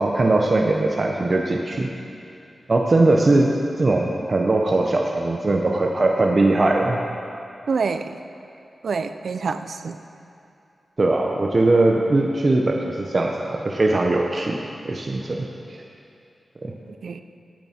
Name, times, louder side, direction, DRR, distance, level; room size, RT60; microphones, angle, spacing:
voice 1, 0.0-1.9 2.7-7.0 11.0-14.6 14.8-15.8 16.6-16.7, right 2 dB, 40° right, 0 dB, 0.8 m, -20 dB
voice 2, 7.7-8.2 8.8-10.0 17.0-17.2, right 5 dB, 75° right, 9 dB, 0.5 m, -26 dB
15.0 x 9.1 x 4.4 m, 2.7 s
wide cardioid pair, 100°, 0 cm